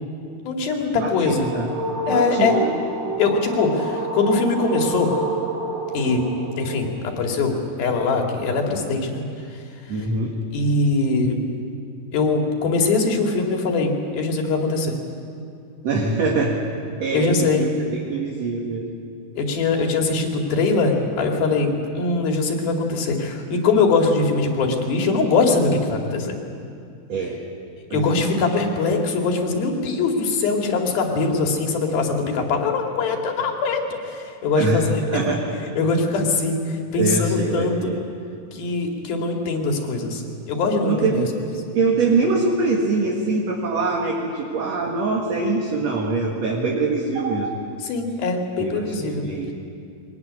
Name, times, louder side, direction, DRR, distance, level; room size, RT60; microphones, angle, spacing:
voice 1, 0.4-1.5 2.1-2.6 3.2-5.2 5.9-6.3 6.6-9.3 9.9-10.0 10.5-11.4 12.1-14.9 17.1-17.7 19.4-26.4 27.9-35.3 35.8-38.0 38.5-41.3 47.8-49.2, left 3 dB, 80° left, 2 dB, 4.2 m, -22 dB
sound 1, 0.8-6.9, right 2 dB, 85° right, 6.7 m, -29 dB
voice 2, 1.0-1.7 2.1-2.8 9.9-10.4 15.8-16.6 17.0-18.9 27.1-27.4 27.9-28.2 34.6-35.4 37.0-38.0 40.8-41.3 41.7-47.6 48.6-49.5, right 3 dB, 50° right, -1 dB, 2.8 m, -23 dB
23.0 x 19.0 x 9.8 m, 2.5 s
omnidirectional pair, 4.2 m